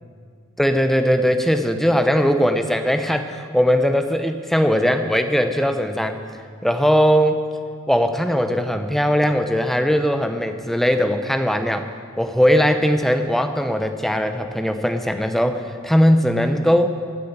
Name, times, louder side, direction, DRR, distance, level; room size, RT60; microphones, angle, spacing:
voice 1, 0.6-6.2 6.6-7.4 7.9-11.9 12.2-17.0, equal, ahead, 7 dB, 0.6 m, -19 dB
15.5 x 9.2 x 7.2 m, 2.2 s
head